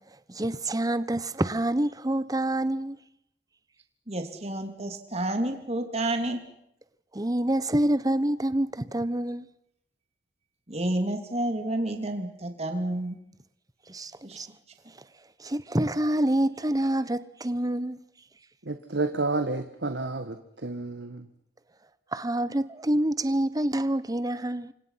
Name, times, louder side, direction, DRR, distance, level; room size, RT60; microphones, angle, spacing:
voice 1, 0.3-3.0 7.1-9.5 13.9-14.5 15.4-18.0 22.1-24.7, right 1 dB, 20° right, 1.1 m, -27 dB
voice 2, 4.1-6.4 10.7-13.2 14.2-14.4, right 1 dB, 40° right, 3.0 m, -30 dB
voice 3, 18.6-21.3, right 3 dB, 80° right, 1.6 m, -30 dB
29.0 x 25.0 x 5.8 m
head